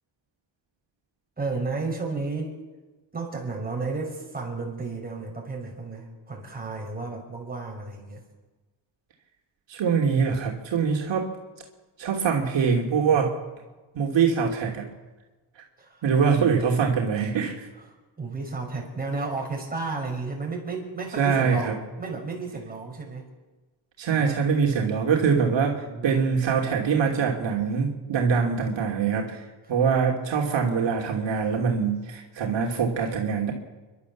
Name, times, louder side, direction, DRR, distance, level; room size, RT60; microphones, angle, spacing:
voice 1, 1.4-2.6 3.1-8.2 15.8-16.1 18.2-23.3 24.1-24.5 25.6-26.2, right 3 dB, 20° right, 0 dB, 6.1 m, -33 dB
voice 2, 9.7-11.3 12.0-13.3 13.9-14.9 16.0-17.5 21.2-21.7 24.0-29.4 29.7-33.5, right 6 dB, 70° right, 0 dB, 3.0 m, -23 dB
30.0 x 12.5 x 7.2 m, 1.2 s
cardioid pair, 115°, 46 cm